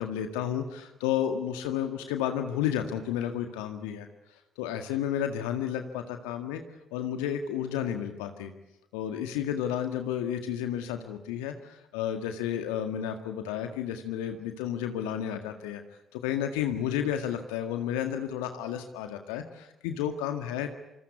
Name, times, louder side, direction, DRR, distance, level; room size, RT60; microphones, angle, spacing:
voice 1, 0.0-4.1 4.6-6.6 6.9-8.5 8.9-15.8 16.1-20.7, left 9 dB, 70° left, 6 dB, 1.8 m, -32 dB
27.0 x 26.5 x 8.4 m, 0.91 s
figure-of-eight pair, 45°, 0 cm